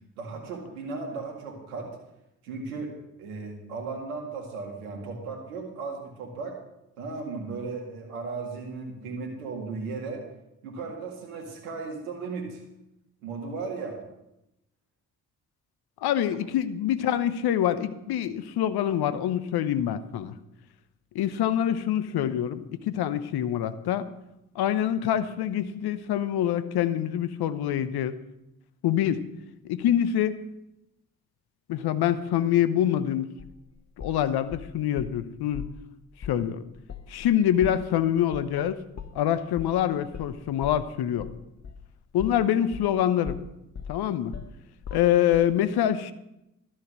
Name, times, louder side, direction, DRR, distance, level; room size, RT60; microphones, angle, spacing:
voice 1, 0.2-1.9 2.4-2.9 3.2-6.6 7.0-10.2 10.6-12.6 13.2-14.0, right 4 dB, 90° right, 2 dB, 2.0 m, -36 dB
voice 2, 16.0-20.4 21.1-24.0 24.5-28.1 28.8-29.2 29.6-30.4 31.7-33.3 34.0-35.6 36.2-36.6 37.1-38.8 39.1-41.3 42.1-43.4 43.9-44.3 44.9-46.1, left 10 dB, 65° left, 13 dB, 0.9 m, -25 dB
sound 1, 33.4-35.2 35.5-35.8 36.2-36.4 36.7-43.0 43.3-45.5, left 7 dB, 40° left, 1.1 m, -40 dB
13.0 x 7.7 x 6.2 m, 0.88 s
hypercardioid pair, 40°, 41 cm